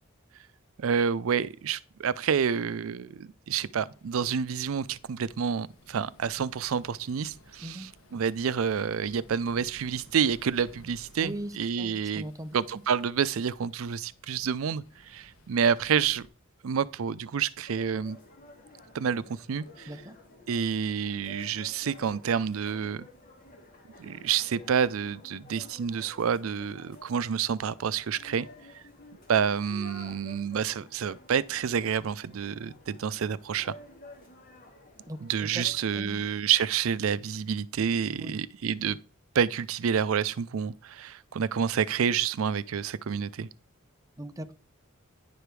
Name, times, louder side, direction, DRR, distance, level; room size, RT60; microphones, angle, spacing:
voice 1, 0.8-12.3 12.5-16.3 16.6-18.2 18.9-19.9 20.5-23.1 24.0-28.5 28.7-28.8 29.3-33.7 35.2-39.0 39.3-43.5, right 7 dB, 75° right, 0.4 m, -28 dB
sound 1, 3.5-16.3, left 1 dB, 85° left, 1.4 m, -57 dB
voice 2, 11.2-12.6 19.9-20.1 35.1-35.6 35.9-36.2 38.2-38.4 44.2-44.5, right 1 dB, 15° right, 0.6 m, -39 dB
sound 2, 17.7-36.0, left 2 dB, 40° left, 2.2 m, -52 dB
10.0 x 5.0 x 4.7 m
head